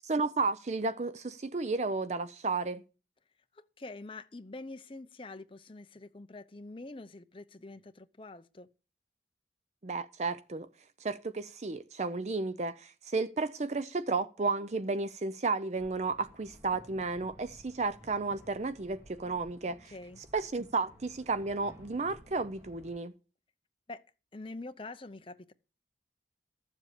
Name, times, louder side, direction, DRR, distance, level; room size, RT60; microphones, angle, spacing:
voice 1, 0.1-2.8 9.8-10.7 11.0-19.9 20.3-23.1, right 3 dB, 35° right, 0.5 m, -33 dB
voice 2, 3.5-8.7 19.8-20.2 23.9-24.0 24.3-25.5, left 2 dB, 30° left, 0.7 m, -45 dB
sound 1, 15.8-23.0, equal, 15° right, 2.2 m, -56 dB
13.5 x 7.5 x 6.6 m
head